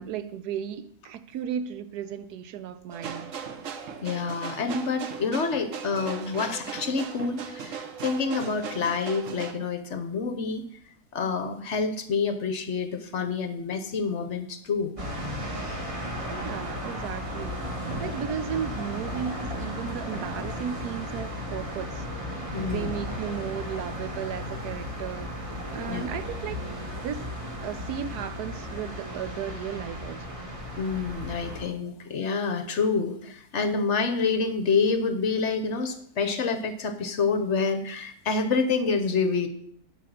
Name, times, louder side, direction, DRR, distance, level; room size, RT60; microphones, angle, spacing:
voice 1, 0.0-3.3 16.3-22.0 22.6-27.3 27.6-30.4, right 8 dB, 85° right, 1.2 m, -35 dB
sound 1, 2.9-9.5, right 6 dB, 60° right, 1.1 m, -38 dB
voice 2, 4.0-10.6 11.1-14.9 22.5-22.9 25.9-26.0 30.8-39.5, left 4 dB, 55° left, 1.0 m, -27 dB
sound 2, 15.0-31.6, equal, 20° right, 1.7 m, -35 dB
9.9 x 5.4 x 6.5 m
omnidirectional pair, 1.6 m